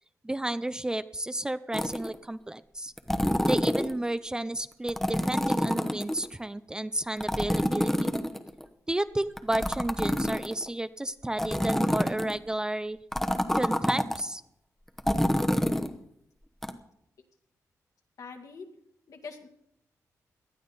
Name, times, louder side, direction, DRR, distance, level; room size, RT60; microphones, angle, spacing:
voice 1, 0.2-2.9 3.5-8.1 8.9-13.0 13.5-14.4, right 1 dB, 10° right, 13 dB, 0.4 m, -32 dB
sound 1, 1.7-2.1 3.0-3.9 4.9-6.3 7.2-8.6 9.4-10.7 11.4-12.4 13.1-14.2 15.0-15.9 16.6-16.7, equal, 5° left, 0.9 m, -27 dB
voice 2, 18.2-18.7 19.1-19.5, left 5 dB, 70° left, 4 dB, 2.0 m, -43 dB
19.0 x 11.5 x 4.1 m, 0.75 s
wide cardioid pair, 105°, 6 cm